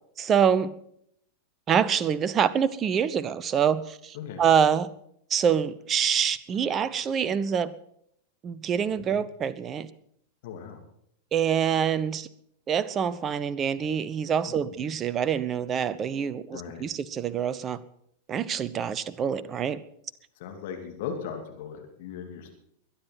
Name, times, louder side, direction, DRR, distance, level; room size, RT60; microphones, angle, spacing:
voice 1, 0.2-0.8 1.7-4.9 5.3-7.7 8.4-9.9 11.3-12.3 12.7-17.8 18.3-19.8, right 8 dB, 25° right, 17 dB, 0.8 m, -26 dB
voice 2, 4.1-4.5 9.0-9.2 10.4-10.8 14.4-14.9 16.5-16.8 20.4-22.5, left 7 dB, 50° left, 3 dB, 2.8 m, -38 dB
22.0 x 9.9 x 6.0 m, 0.73 s
figure-of-eight pair, 90°, 0 cm